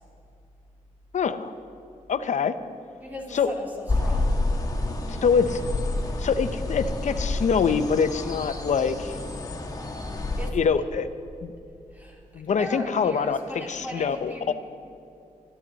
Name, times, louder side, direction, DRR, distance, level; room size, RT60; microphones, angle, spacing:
voice 1, 1.1-1.5 2.1-2.5 3.3-3.5 5.1-5.6 6.2-9.1 10.5-11.1 11.4-11.5 12.3-14.5, left 6 dB, 60° left, 10 dB, 0.8 m, -24 dB
voice 2, 3.0-4.4 10.4-10.6 11.9-14.5, equal, 15° right, -2 dB, 3.3 m, -39 dB
sound 1, 3.9-10.5, left 2 dB, 25° left, 1.4 m, -29 dB
27.0 x 12.0 x 4.1 m, 2.6 s
wide cardioid pair, 125°, 14 cm